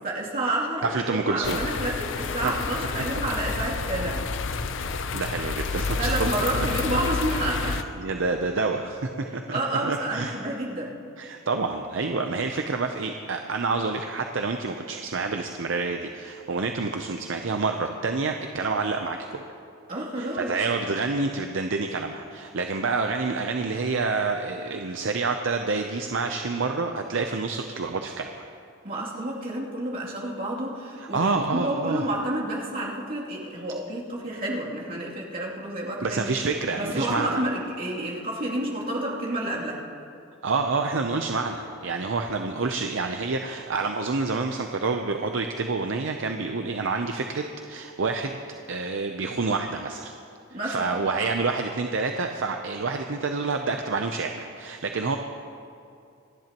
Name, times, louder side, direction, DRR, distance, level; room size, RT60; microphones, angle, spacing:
voice 1, 0.0-4.3 6.0-7.8 9.5-10.9 19.9-20.5 28.8-36.2 36.7-39.8 50.5-51.0, right 1 dB, 45° right, -5 dB, 2.8 m, -29 dB
voice 2, 0.8-1.6 2.4-2.5 4.8-6.3 7.6-10.4 11.2-19.4 20.2-28.5 31.1-32.1 36.0-37.4 40.4-48.4 48.7-50.1 50.6-55.2, right 4 dB, 65° right, 5 dB, 0.6 m, -28 dB
sound 1, 1.4-7.8, left 4 dB, 65° left, 0.6 m, -29 dB
27.5 x 10.5 x 3.0 m, 2.6 s
head